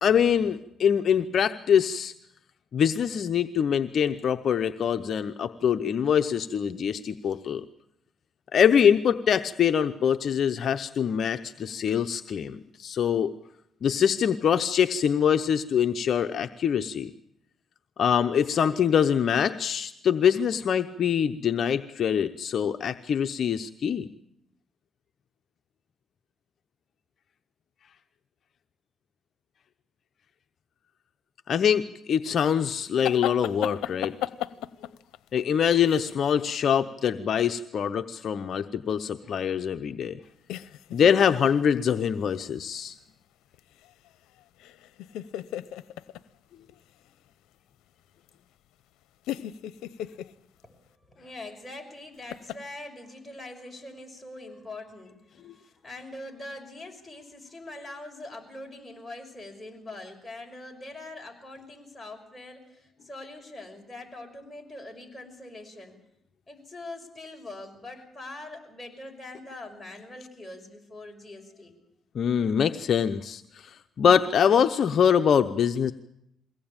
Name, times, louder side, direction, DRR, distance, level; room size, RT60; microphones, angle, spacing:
voice 1, 0.0-2.1 2.7-7.6 8.5-13.3 13.8-17.1 18.0-24.1 31.5-34.1 35.3-40.2 40.9-43.0 55.4-55.5 72.1-75.9, left 8 dB, 60° left, 8 dB, 0.8 m, -24 dB
sound 1, 33.0-36.1 40.5-41.4 41.8-42.1 43.5-44.1 44.4-46.2 46.7-46.8 48.3-48.4 49.2-50.3 52.3-52.6, left 13 dB, 90° left, 0.8 m, -35 dB
voice 2, 51.1-55.2 55.4-65.9 66.5-71.7, left 2 dB, 15° left, 2 dB, 6.2 m, -43 dB
23.0 x 17.5 x 8.8 m, 0.79 s
cardioid pair, 90°, 0 cm